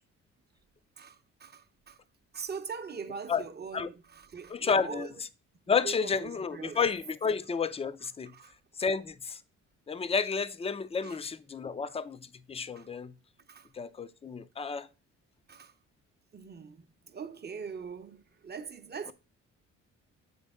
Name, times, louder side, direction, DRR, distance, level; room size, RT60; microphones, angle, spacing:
voice 1, 1.0-2.0 2.3-5.1 5.8-6.8 7.2-7.3 8.2-8.6 11.0-11.2 11.8-12.0 12.7-12.9 13.5-13.7 15.5-15.7 16.3-19.1, right 6 dB, 35° right, 0.8 m, -42 dB
voice 2, 4.5-5.1 5.7-8.3 8.8-9.4 9.9-13.1 13.7-14.9, left 5 dB, 20° left, 0.5 m, -31 dB
7.5 x 5.2 x 3.5 m
cardioid pair, 90°, 30 cm